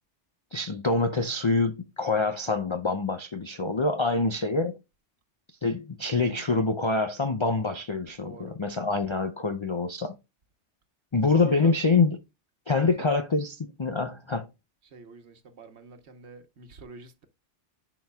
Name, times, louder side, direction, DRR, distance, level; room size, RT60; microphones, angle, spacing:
voice 1, 0.5-4.8 5.6-10.2 11.1-12.2 12.7-14.5, left 3 dB, 45° left, 0.3 m, -26 dB
voice 2, 8.2-8.6 11.3-11.8 12.7-13.1 14.8-17.3, right 4 dB, 65° right, 1.3 m, -45 dB
10.5 x 4.0 x 2.3 m
omnidirectional pair, 1.2 m